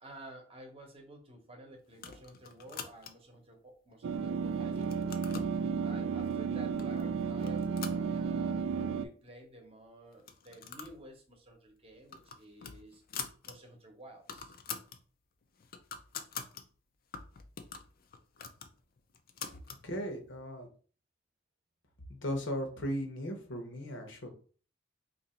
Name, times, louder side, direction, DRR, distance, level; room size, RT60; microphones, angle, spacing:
voice 1, 0.0-5.0 5.8-13.0 13.5-14.6, right 1 dB, 30° right, 3 dB, 0.9 m, -52 dB
sound 1, 1.9-3.4 3.9-4.4 4.7-5.6 6.3-6.4 6.8-7.1 7.4-8.6 9.0-9.1 9.3-9.4 10.1-11.0 11.3-11.5 11.9-13.5 13.9-14.0 14.2-15.0 15.4-16.6 17.1-19.8, left 6 dB, 50° left, 0.5 m, -45 dB
sound 2, 4.0-9.1, right 5 dB, 80° right, 0.4 m, -33 dB
voice 2, 19.8-20.7 22.1-24.3, equal, 70° left, 4 dB, 1.0 m, -37 dB
2.9 x 2.6 x 4.3 m, 0.40 s
head